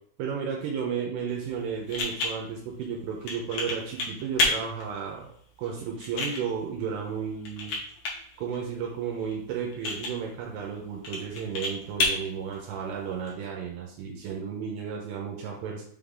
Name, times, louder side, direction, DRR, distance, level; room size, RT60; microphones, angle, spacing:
voice 1, 0.2-5.3 5.6-7.7 8.4-15.8, right 7 dB, 80° right, -1 dB, 2.8 m, -33 dB
sound 1, 1.3-13.3, left 2 dB, 65° left, 1.8 m, -33 dB
6.9 x 3.9 x 3.6 m, 0.62 s
omnidirectional pair, 5.0 m